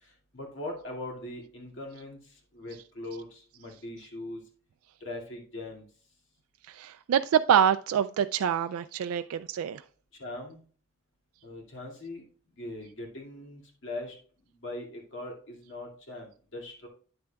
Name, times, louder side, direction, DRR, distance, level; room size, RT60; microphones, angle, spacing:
voice 1, 0.0-4.4 5.0-5.8 10.2-10.6 11.4-12.2 12.6-14.2 14.6-16.9, left 2 dB, 60° left, 2.3 m, -41 dB
voice 2, 6.7-9.8, right 8 dB, 90° right, 0.3 m, -26 dB
9.7 x 7.7 x 2.3 m
head